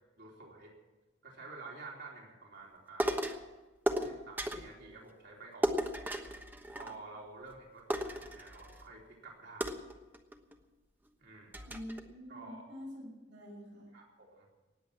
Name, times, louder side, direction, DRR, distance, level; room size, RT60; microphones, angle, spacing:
voice 1, 0.2-0.7 1.2-3.3 4.0-5.8 6.8-9.7 11.2-11.6 12.3-12.6 13.9-14.5, right 3 dB, 60° right, -2 dB, 4.0 m, -50 dB
sound 1, 3.0-3.5 3.9-4.7 5.6-7.2 7.5-7.6 7.9-8.9 9.6-10.6 11.1-11.2 11.5-12.0, right 1 dB, 10° right, 1.1 m, -35 dB
voice 2, 11.6-13.9, equal, 90° right, -1 dB, 6.4 m, -46 dB
19.0 x 8.0 x 8.9 m, 1.2 s
head